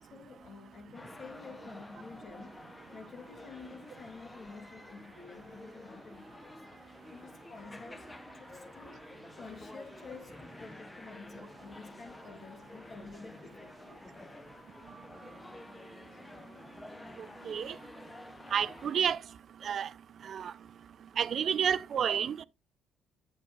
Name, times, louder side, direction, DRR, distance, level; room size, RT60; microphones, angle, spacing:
voice 1, 0.0-2.7 2.9-6.6 7.1-9.0 9.4-14.1, left 4 dB, 45° left, 2.0 m, -50 dB
sound 1, 0.9-19.2, left 2 dB, 20° left, 0.7 m, -50 dB
voice 2, 18.5-19.2 19.6-19.9 20.3-20.5 21.2-22.4, right 8 dB, 55° right, 0.4 m, -30 dB
8.3 x 7.9 x 2.3 m
hypercardioid pair, 55°, 0 cm